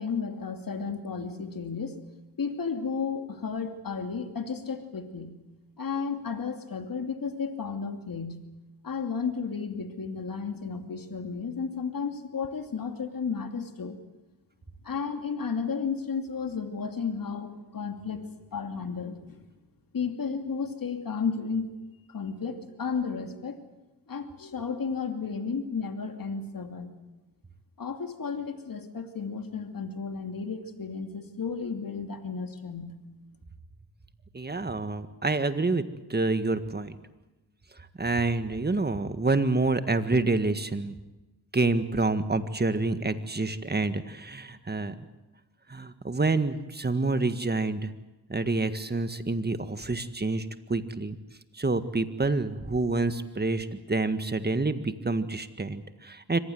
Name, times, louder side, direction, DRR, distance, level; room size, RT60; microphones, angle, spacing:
voice 1, 0.0-2.0 2.4-5.3 5.8-8.4 8.8-14.0 14.8-19.5 19.9-21.7 22.1-23.6 24.1-26.9 27.8-32.9, left 5 dB, 50° left, 6 dB, 2.7 m, -33 dB
voice 2, 34.3-35.8 36.1-37.0 38.0-40.9 41.5-44.9 45.7-47.9 48.3-51.2 51.5-56.4, right 3 dB, 25° right, 10 dB, 1.7 m, -27 dB
24.5 x 19.0 x 7.9 m, 1.1 s
cardioid pair, 65°, 43 cm